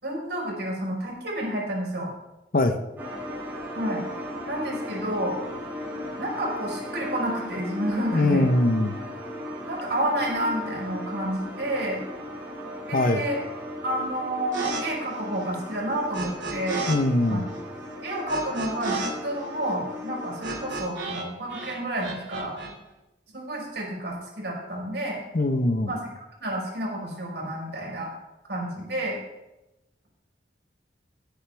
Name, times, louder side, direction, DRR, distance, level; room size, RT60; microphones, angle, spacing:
voice 1, 0.0-2.1 3.7-4.0 4.5-5.4 6.2-8.5 9.7-12.0 12.9-13.4 13.8-16.9 17.3-17.4 18.0-22.6 23.3-25.2 25.9-26.0 26.4-28.1 28.5-29.2, right 1 dB, 65° right, -2 dB, 4.4 m, -30 dB
sound 1, 3.0-20.8, left 1 dB, 10° right, 4.6 m, -36 dB
voice 2, 8.1-8.9 12.9-13.2 16.9-17.5 25.3-25.9, left 2 dB, 50° left, 7 dB, 0.8 m, -22 dB
sound 2, 14.5-14.8 15.1-17.0 17.2-21.2 21.5-22.7, right 4 dB, 85° right, 2.3 m, -33 dB
16.5 x 8.0 x 3.4 m, 0.96 s
head